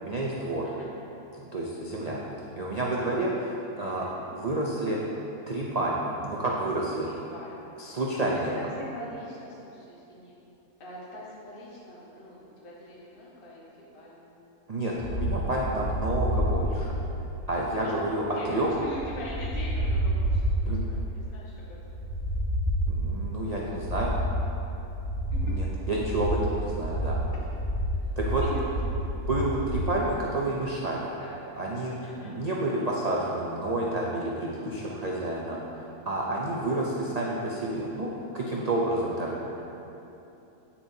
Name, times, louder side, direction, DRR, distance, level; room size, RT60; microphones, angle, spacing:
voice 1, 0.0-0.7 1.5-2.2 2.6-4.1 4.3-5.0 5.5-7.1 7.8-8.5 14.7-17.0 17.5-18.7 20.7-20.8 22.9-24.2 25.4-27.2 28.2-28.4 29.3-31.1 31.6-31.9 32.2-39.3, right 2 dB, 60° right, -4 dB, 0.4 m, -29 dB
voice 2, 3.8-4.1 7.0-7.8 8.6-10.4 10.8-13.6 13.9-14.3 17.8-21.8 25.3-25.5 28.0-28.8 31.2-31.4 32.0-32.4 36.3-36.6 39.0-39.6, left 1 dB, 40° left, -6 dB, 1.3 m, -43 dB
sound 1, 15.0-29.9, equal, ahead, 1.2 m, -29 dB
8.9 x 7.1 x 2.7 m, 2.9 s
omnidirectional pair, 1.6 m